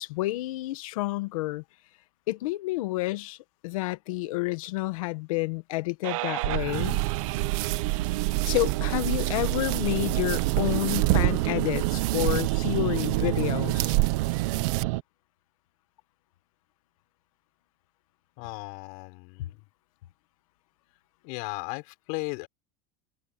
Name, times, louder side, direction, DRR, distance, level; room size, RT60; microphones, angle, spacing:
voice 1, 0.0-1.6 2.3-3.4 3.6-7.0 8.4-13.9, left 19 dB, 90° left, 1.7 m, -29 dB
sound 1, 6.0-15.0, right 19 dB, 75° right, 1.0 m, -29 dB
sound 2, 6.7-14.8, right 20 dB, 60° right, 1.9 m, -29 dB
voice 2, 18.4-19.7 21.2-22.5, left 31 dB, 60° left, 6.7 m, -36 dB
cardioid pair, 165°, 17 cm